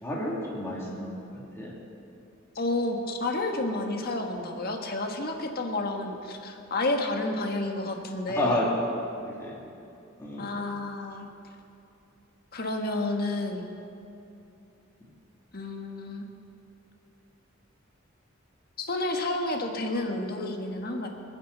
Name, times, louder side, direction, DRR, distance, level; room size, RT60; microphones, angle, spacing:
voice 1, 0.0-1.7 8.3-8.7 9.4-9.6 10.2-10.5, left 1 dB, 10° left, -5 dB, 2.6 m, -30 dB
voice 2, 2.5-8.6 10.4-11.3 12.5-13.7 15.5-16.3 18.8-21.1, left 2 dB, 45° left, 2 dB, 1.5 m, -30 dB
28.0 x 9.7 x 4.1 m, 2.8 s
head